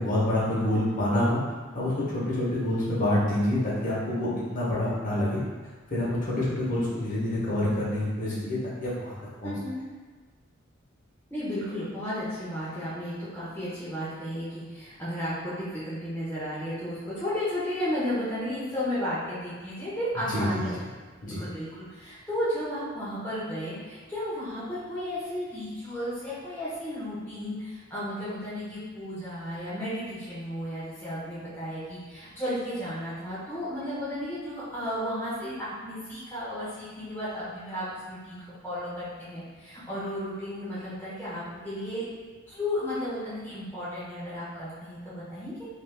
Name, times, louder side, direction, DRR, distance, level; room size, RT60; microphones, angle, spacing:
voice 1, 0.0-1.4 1.7-5.4 5.9-9.2 9.4-9.5 20.3-20.7 21.2-21.4, left 1 dB, 40° left, -7 dB, 0.9 m, -27 dB
voice 2, 9.4-9.8 11.3-20.7 21.2-42.0 42.5-45.7, equal, 10° left, -11 dB, 0.7 m, -33 dB
2.5 x 2.4 x 3.4 m, 1.4 s
head